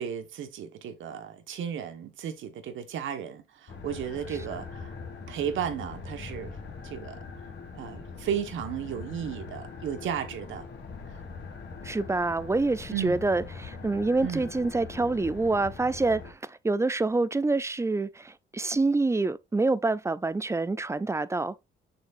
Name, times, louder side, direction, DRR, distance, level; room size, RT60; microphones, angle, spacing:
voice 1, 0.0-4.9 5.3-6.5 6.8-7.2 7.7-10.6 12.9-13.2 14.2-14.5, right 8 dB, 75° right, 1.4 m, -34 dB
sound 1, 3.7-16.3, left 4 dB, 60° left, 2.6 m, -42 dB
voice 2, 11.8-21.6, right 3 dB, 15° right, 0.5 m, -27 dB
6.4 x 6.1 x 2.6 m
cardioid pair, 90°, 20 cm